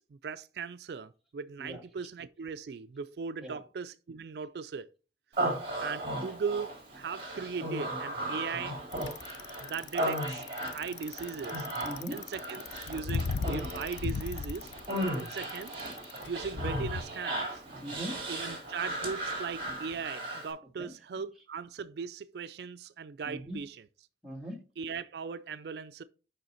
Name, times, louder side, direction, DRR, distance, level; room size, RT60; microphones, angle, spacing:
voice 1, 0.0-4.9 5.8-8.8 9.6-10.4 10.7-11.7 12.1-14.7 15.1-15.8 16.3-17.6 18.3-23.9 24.8-26.0, right 5 dB, 70° right, 0.4 m, -38 dB
Human voice, 5.3-20.5, right 1 dB, 30° right, 3.7 m, -36 dB
voice 2, 5.4-5.7 11.8-12.2 17.8-18.1 20.8-20.9 23.2-23.6 24.2-24.6, right 1 dB, ahead, 1.8 m, -40 dB
Bicycle, 8.9-17.0, left 4 dB, 75° left, 0.4 m, -36 dB
6.6 x 5.6 x 4.3 m
head